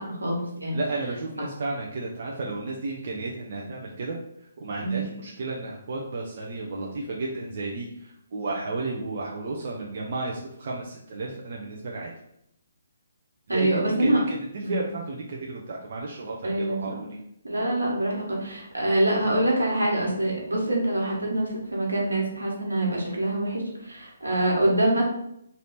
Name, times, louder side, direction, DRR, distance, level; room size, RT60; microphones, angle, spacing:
voice 1, 0.0-0.8 4.8-5.1 13.5-14.2 14.6-14.8 16.4-17.0 17.4-25.0, right 1 dB, 85° right, -2 dB, 1.5 m, -25 dB
voice 2, 0.7-4.2 4.6-12.1 13.5-17.2, right 3 dB, 50° right, -2 dB, 0.6 m, -33 dB
3.3 x 2.7 x 4.2 m, 0.75 s
figure-of-eight pair, 135°, 0 cm